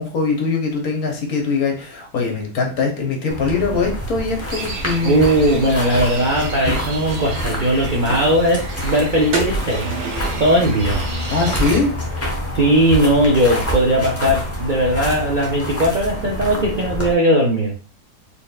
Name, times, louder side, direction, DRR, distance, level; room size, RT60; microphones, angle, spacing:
voice 1, 0.0-5.2 11.3-11.9, left 4 dB, 65° left, 1 dB, 1.4 m, -22 dB
sound 1, 3.3-17.1, equal, 10° left, 0.7 m, -27 dB
sound 2, 4.5-11.8, right 2 dB, 80° right, 1.5 m, -31 dB
voice 2, 5.0-9.9 10.4-11.0 12.5-17.7, right 1 dB, 55° right, -2 dB, 0.5 m, -18 dB
4.3 x 3.3 x 2.3 m, 0.37 s
omnidirectional pair, 1.8 m